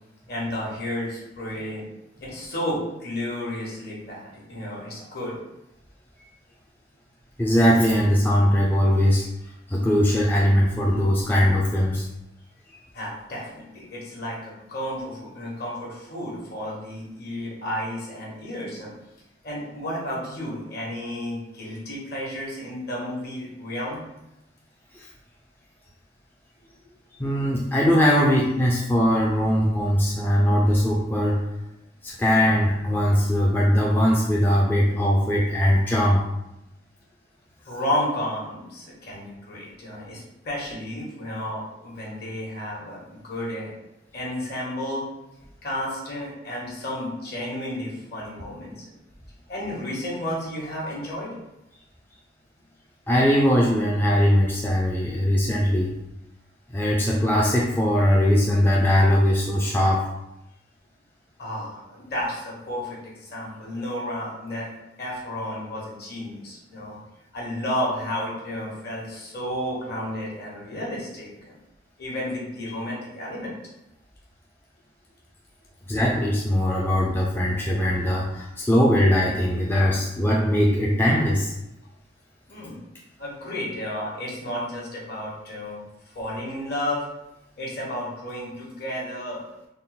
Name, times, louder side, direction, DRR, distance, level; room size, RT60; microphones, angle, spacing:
voice 1, 0.3-1.8 2.2-5.4 12.9-18.9 19.4-24.0 37.6-43.7 44.1-45.0 45.6-48.9 49.5-51.3 61.4-64.7 65.0-67.0 67.3-71.6 72.0-73.5 82.5-82.8 83.2-85.8 86.1-87.0 87.6-89.4, left 1 dB, 55° left, -4 dB, 1.2 m, -32 dB
voice 2, 7.4-9.3 9.7-12.1 12.7-12.8 24.9-25.1 27.2-31.4 32.0-36.2 53.1-56.0 56.7-60.0 75.9-81.5, equal, 10° left, -4 dB, 0.3 m, -20 dB
3.7 x 2.1 x 3.9 m, 0.89 s
head